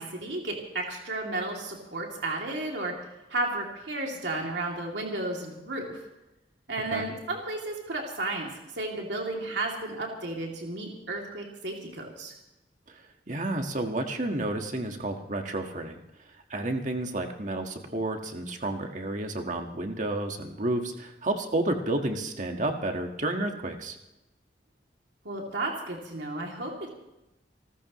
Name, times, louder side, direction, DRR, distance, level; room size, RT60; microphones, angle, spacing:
voice 1, 0.0-2.9 3.3-6.0 6.7-8.5 8.7-12.3 25.2-26.9, right 2 dB, 85° right, 0 dB, 2.8 m, -33 dB
voice 2, 12.9-16.0 16.5-24.0, right 1 dB, 45° right, 4 dB, 1.7 m, -31 dB
29.0 x 14.0 x 3.1 m, 0.95 s
head